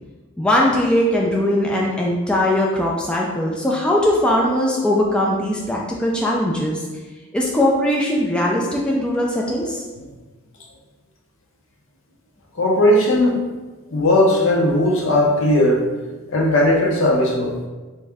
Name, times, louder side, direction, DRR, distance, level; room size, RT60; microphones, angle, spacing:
voice 1, 0.4-6.8 7.3-9.8, left 1 dB, 5° left, -3 dB, 0.3 m, -20 dB
voice 2, 12.6-13.4 13.9-15.9 16.3-17.6, left 1 dB, 65° left, -1 dB, 0.7 m, -17 dB
3.6 x 3.1 x 3.4 m, 1.2 s
head